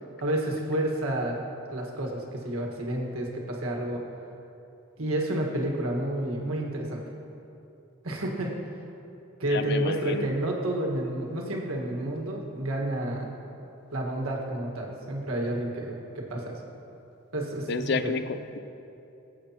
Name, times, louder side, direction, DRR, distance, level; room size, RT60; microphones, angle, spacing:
voice 1, 0.2-1.4 1.7-4.0 5.0-7.0 8.0-8.5 9.4-13.3 13.9-16.6 17.3-18.1, right 1 dB, 90° right, 0 dB, 1.6 m, -30 dB
voice 2, 9.5-10.3 17.7-18.6, left 4 dB, 50° left, 11 dB, 0.4 m, -30 dB
18.0 x 8.3 x 2.9 m, 2.9 s
head